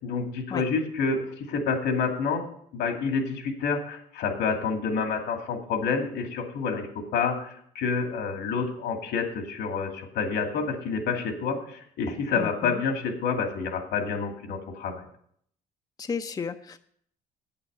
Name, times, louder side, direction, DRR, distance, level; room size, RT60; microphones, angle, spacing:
voice 1, 0.0-2.5 2.7-15.1, left 5 dB, 85° left, 4 dB, 2.4 m, -28 dB
voice 2, 12.4-12.8 16.0-16.8, left 5 dB, 20° left, 8 dB, 0.6 m, -33 dB
8.6 x 8.3 x 6.7 m, 0.66 s
cardioid pair, 110°, 17 cm